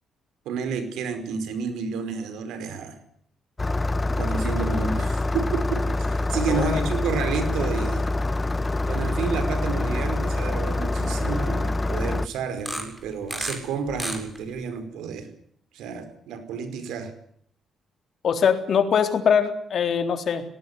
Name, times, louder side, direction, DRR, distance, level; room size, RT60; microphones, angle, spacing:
voice 1, 0.4-3.0 4.2-8.0 8.9-15.3 15.7-17.1, right 5 dB, 85° right, 10 dB, 5.0 m, -30 dB
Engine starting, 3.6-12.3, left 2 dB, 20° left, 1.0 m, -25 dB
voice 2, 6.5-6.9 18.2-20.4, left 7 dB, 60° left, 8 dB, 3.7 m, -22 dB
sound 1, 8.8-9.1 9.5-9.6 10.3-10.4 12.5-13.6 13.9-14.6, right 1 dB, 10° right, 7.0 m, -32 dB
18.5 x 18.5 x 9.8 m, 0.64 s
cardioid pair, 90°, 0 cm